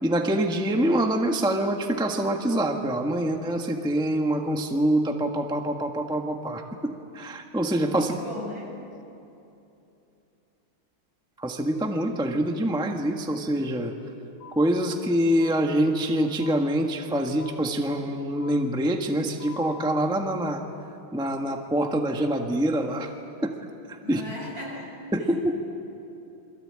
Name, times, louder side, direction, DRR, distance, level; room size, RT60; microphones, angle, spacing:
voice 1, 0.0-8.2 11.4-13.9 14.5-20.6 21.1-23.1 23.4-23.5 23.9-24.2 25.1-25.5, right 1 dB, 5° right, 3 dB, 1.3 m, -25 dB
voice 2, 7.9-8.8 24.0-24.9 25.2-25.6, left 1 dB, 60° right, -2 dB, 8.1 m, -38 dB
sound 1, 14.4-14.5 15.4-15.5 16.4-16.5 17.4-17.5 18.4-18.5 19.4-19.9, left 9 dB, 60° left, 4.1 m, -43 dB
28.5 x 23.0 x 8.9 m, 2.8 s
omnidirectional pair, 2.3 m